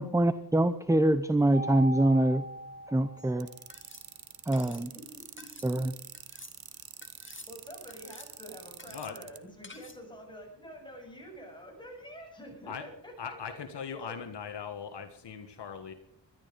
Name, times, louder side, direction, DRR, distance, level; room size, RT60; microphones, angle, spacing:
voice 1, 0.0-2.5 2.9-3.5 4.5-4.9 5.6-5.9, right 1 dB, 5° right, 13 dB, 0.7 m, -25 dB
Mallet percussion, 1.5-3.8, right 1 dB, 25° right, 7.4 m, -39 dB
sound 1, 3.2-3.3 3.7-4.1 4.5-4.9 5.4-5.7 6.1-6.6 7.0-7.5 7.9-8.4 8.8-9.1 9.6-10.0, left 3 dB, 25° left, 2.0 m, -51 dB
sound 2, 3.4-9.4, right 8 dB, 55° right, 1.2 m, -46 dB
voice 2, 4.6-5.8 7.3-14.2, equal, 10° left, 1 dB, 7.1 m, -48 dB
voice 3, 13.2-15.9, left 7 dB, 65° left, 7 dB, 1.5 m, -40 dB
20.5 x 12.5 x 5.2 m, 0.68 s
wide cardioid pair, 100°, 44 cm